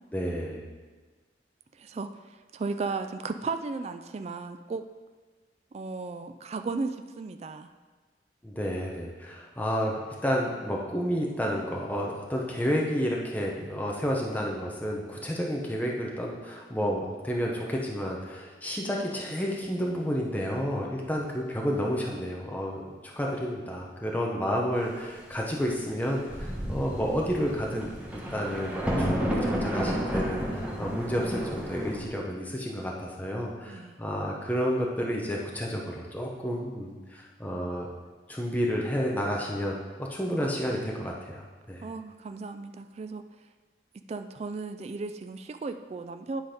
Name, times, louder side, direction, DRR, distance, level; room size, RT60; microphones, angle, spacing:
voice 1, 0.1-0.6 8.4-37.9 38.3-41.9, equal, 10° left, -2 dB, 0.8 m, -31 dB
voice 2, 1.8-2.1 2.5-4.8 5.7-7.7 33.7-34.0 41.8-43.2 44.1-46.4, right 4 dB, 35° right, 8 dB, 0.3 m, -35 dB
Thunder, 25.9-26.0 26.3-32.1, equal, 5° right, 1.1 m, -31 dB
10.0 x 4.0 x 5.1 m, 1.4 s
head